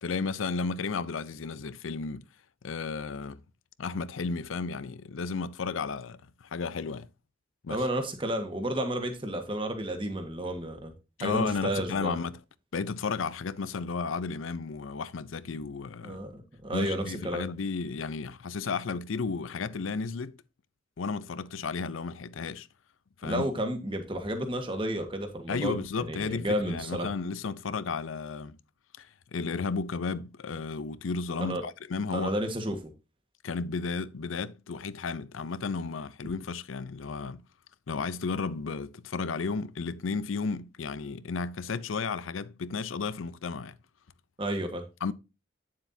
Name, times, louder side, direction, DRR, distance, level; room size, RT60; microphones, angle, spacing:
voice 1, 0.0-2.3 2.6-3.4 3.8-7.1 7.6-7.8 11.2-12.4 12.7-16.2 16.7-20.4 21.0-22.7 23.2-23.4 25.5-28.6 29.0-29.1 29.3-32.3 33.4-37.4 37.9-43.8 45.0-45.1, left 4 dB, 85° left, 0.6 m, -33 dB
voice 2, 7.7-10.9 11.2-12.2 16.0-17.4 23.2-27.1 31.4-31.6 32.1-32.9 44.4-44.8, right 1 dB, 25° right, 1.4 m, -32 dB
9.2 x 7.5 x 2.7 m
head